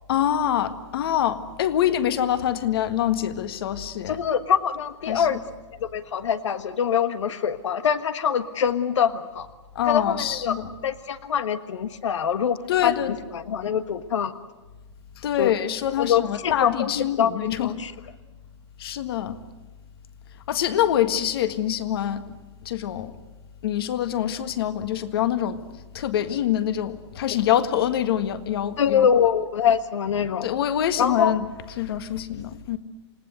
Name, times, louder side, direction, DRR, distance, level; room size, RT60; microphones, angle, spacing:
voice 1, 0.1-4.2 5.1-5.4 9.7-10.6 12.7-13.1 15.2-17.7 18.8-19.4 20.5-22.4 22.6-23.1 23.6-25.6 25.9-29.1 30.4-31.5 31.8-32.8, left 11 dB, 55° left, 11 dB, 1.7 m, -25 dB
voice 2, 4.1-5.4 5.8-9.5 9.8-10.6 10.8-14.3 15.4-15.5 16.0-17.9 28.8-30.5 31.0-31.3, left 8 dB, 80° left, 11 dB, 1.5 m, -24 dB
29.0 x 18.5 x 8.0 m, 1.2 s
hypercardioid pair, 165°, 15 cm